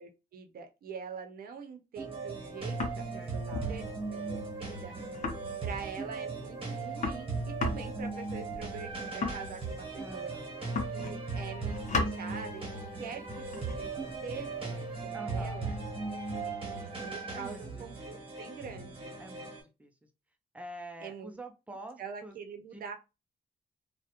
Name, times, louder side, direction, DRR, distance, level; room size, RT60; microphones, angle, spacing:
voice 1, 0.0-4.9 5.6-10.3 10.9-12.6 13.0-13.9 14.2-15.8 16.7-19.1 21.0-21.3 22.0-22.9, right 6 dB, 70° right, 4 dB, 0.6 m, -44 dB
sound 1, 2.0-19.6, right 3 dB, 35° right, 0.9 m, -38 dB
sound 2, 2.4-3.2 3.5-3.8 4.0-4.1 4.4-4.5 4.6-4.8 5.1-6.0 6.4-6.5 6.7-10.2 10.6-11.3 11.6-12.2 13.1-15.0, left 4 dB, 50° left, 0.6 m, -37 dB
voice 2, 3.2-3.9 10.0-10.6 15.1-15.6 17.3-18.3 19.2-20.1 20.5-22.4 22.7-22.8, right 1 dB, 10° right, 4 dB, 0.3 m, -47 dB
2.4 x 2.1 x 2.8 m, 0.27 s
wide cardioid pair, 175°, 16 cm